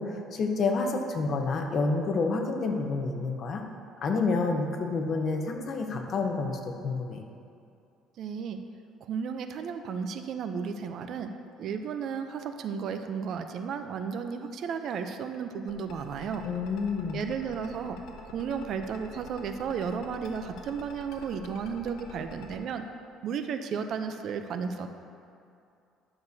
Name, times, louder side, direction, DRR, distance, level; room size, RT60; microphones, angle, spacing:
voice 1, 0.0-3.6 4.0-7.2 16.4-17.2, left 3 dB, 45° left, 3 dB, 0.8 m, -29 dB
voice 2, 8.2-8.6 9.0-11.3 11.6-16.5 17.1-18.0 18.3-22.8 23.2-24.9, right 6 dB, 55° right, 7 dB, 0.5 m, -33 dB
sound 1, 15.7-22.6, left 5 dB, 75° left, 1.1 m, -46 dB
11.5 x 6.7 x 2.7 m, 2.5 s
cardioid pair, 120°, 0 cm